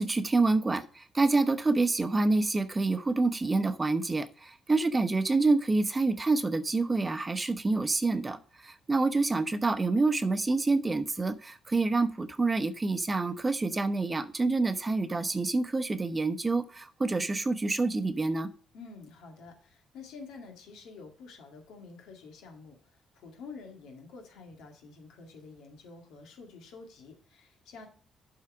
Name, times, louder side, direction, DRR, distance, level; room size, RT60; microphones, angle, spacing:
voice 1, 0.0-8.4 8.6-18.5, right 3 dB, 25° right, 11 dB, 0.8 m, -27 dB
voice 2, 18.7-22.8 23.1-27.9, left 4 dB, 90° left, 2 dB, 2.1 m, -48 dB
7.6 x 4.8 x 4.8 m, 0.42 s
cardioid pair, 90°, 0 cm